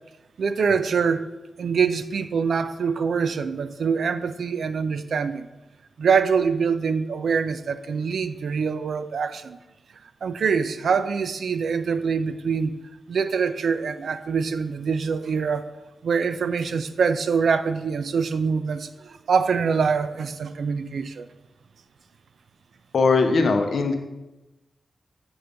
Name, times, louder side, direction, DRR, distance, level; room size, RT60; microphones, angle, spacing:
voice 1, 0.4-1.3 1.6-5.5 6.0-9.6 10.2-12.8 13.1-15.6 16.0-21.3, right 5 dB, 80° right, 11 dB, 0.4 m, -24 dB
voice 2, 22.9-23.9, left 4 dB, 70° left, 5 dB, 0.7 m, -20 dB
8.0 x 3.4 x 5.2 m, 1.0 s
wide cardioid pair, 155°, 0 cm